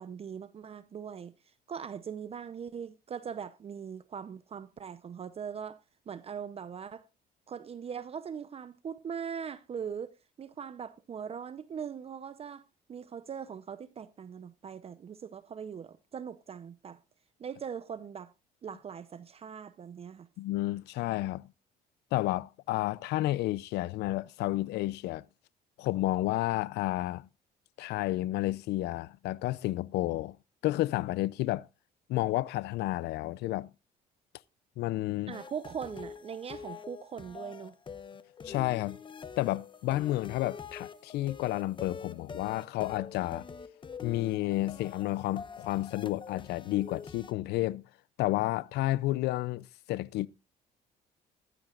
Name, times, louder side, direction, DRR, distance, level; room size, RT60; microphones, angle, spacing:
voice 1, 0.0-5.8 6.1-7.0 7.5-12.6 12.9-17.0 17.4-18.3 18.6-20.3 35.3-37.8, right 7 dB, 35° right, 0.7 m, -41 dB
voice 2, 20.4-21.5 22.1-25.2 25.8-27.3 27.8-30.4 30.6-31.7 32.1-33.7 34.8-35.4 38.4-39.0 39.4-43.5 44.0-47.8 48.2-50.3, left 16 dB, 75° left, 0.5 m, -31 dB
sound 1, 35.3-47.3, left 6 dB, 30° left, 1.0 m, -45 dB
15.0 x 12.0 x 2.4 m
cardioid pair, 110°, 17 cm